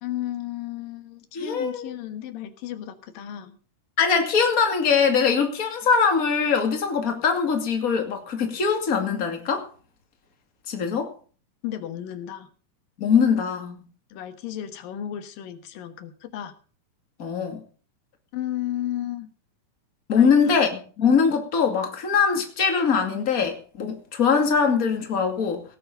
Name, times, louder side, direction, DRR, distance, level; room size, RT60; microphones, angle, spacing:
voice 1, 0.0-3.6 11.6-12.5 14.1-16.5 18.3-19.3 20.1-20.5, left 12 dB, 90° left, 9 dB, 3.1 m, -33 dB
voice 2, 1.3-1.9 4.0-9.7 10.7-11.1 13.0-13.8 17.2-17.6 20.1-25.6, left 6 dB, 30° left, 4 dB, 2.5 m, -22 dB
17.5 x 8.8 x 5.5 m, 0.39 s
omnidirectional pair, 3.9 m